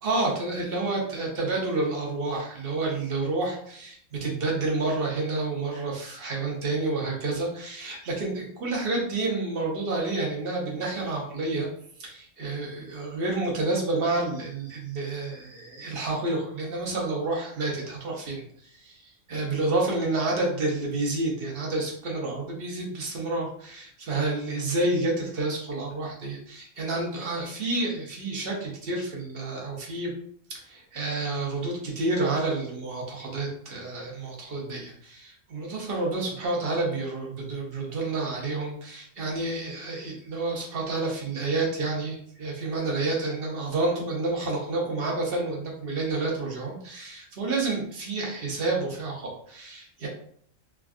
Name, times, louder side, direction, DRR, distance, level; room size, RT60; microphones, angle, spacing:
voice 1, 0.0-11.7 12.0-30.1 30.5-50.1, right 2 dB, 50° right, -2 dB, 0.9 m, -29 dB
3.4 x 2.3 x 2.3 m, 0.63 s
omnidirectional pair, 1.4 m